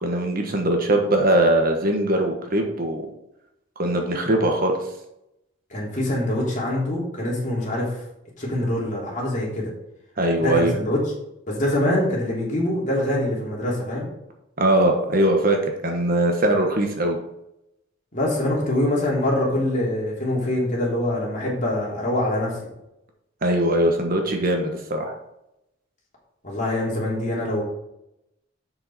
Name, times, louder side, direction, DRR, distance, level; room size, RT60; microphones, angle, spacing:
voice 1, 0.0-3.1 3.8-4.8 10.2-10.7 14.6-17.2 23.4-25.1, right 1 dB, 50° right, 3 dB, 1.3 m, -21 dB
voice 2, 5.7-7.9 8.4-9.7 10.4-11.0 11.5-14.0 18.1-22.5 26.4-27.6, left 1 dB, 40° left, -4 dB, 3.1 m, -24 dB
7.6 x 6.3 x 4.2 m, 0.84 s
head